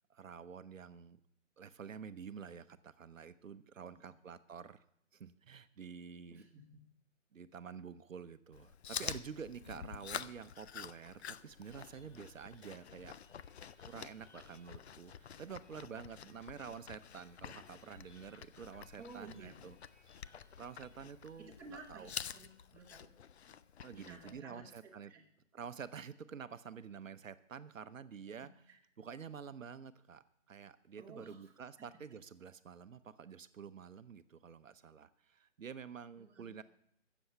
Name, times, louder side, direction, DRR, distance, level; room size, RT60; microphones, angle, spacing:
voice 1, 0.1-1.2 1.6-4.8 5.1-6.4 7.3-13.1 13.9-22.1 23.8-25.1 25.5-28.6 29.0-36.6, right 7 dB, 80° right, 12 dB, 0.8 m, -49 dB
voice 2, 3.8-4.1 6.3-6.8 16.2-16.4 19.0-19.6 21.4-23.1 23.9-25.2 31.0-31.5 31.8-31.9 36.2-36.5, right 3 dB, 5° right, -5 dB, 1.2 m, -54 dB
Chewing mastication, 8.5-24.4, left 8 dB, 55° left, 0.5 m, -48 dB
sound 1, 11.5-22.8, left 1 dB, 25° left, 4.6 m, -70 dB
15.5 x 7.1 x 5.7 m, 0.73 s
figure-of-eight pair, 150°, 39 cm